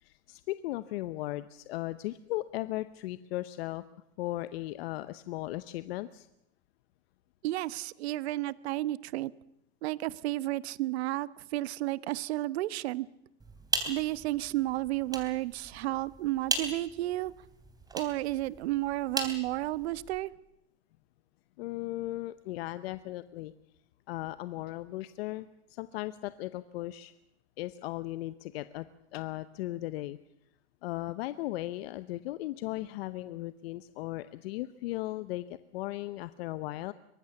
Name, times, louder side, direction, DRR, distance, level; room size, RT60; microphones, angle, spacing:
voice 1, 0.0-3.8 4.2-6.3 21.6-23.5 24.1-27.1 27.6-28.9 29.1-30.2 30.8-36.9, left 16 dB, 60° left, 13 dB, 0.8 m, -37 dB
voice 2, 7.4-9.3 9.8-13.1 13.8-17.3 17.9-20.3, right 17 dB, 65° right, 19 dB, 0.9 m, -32 dB
sound 1, 13.4-20.2, right 3 dB, 10° right, 3.3 m, -38 dB
23.5 x 19.0 x 7.1 m, 0.80 s
supercardioid pair, 135°, 34 cm